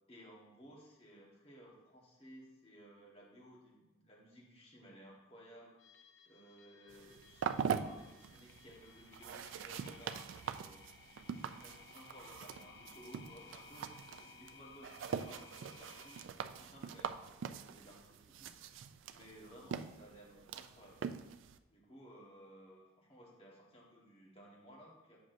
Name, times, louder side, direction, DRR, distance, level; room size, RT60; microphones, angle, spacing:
voice 1, 0.1-5.8 6.3-10.9 11.4-13.9 14.2-18.5 19.1-21.0 21.7-25.2, equal, 30° left, -4 dB, 1.4 m, -58 dB
sound 1, 5.8-16.3, left 5 dB, 60° left, 0.7 m, -59 dB
sound 2, 6.9-21.6, right 7 dB, 80° right, 0.3 m, -43 dB
8.2 x 6.1 x 2.6 m, 1.1 s
head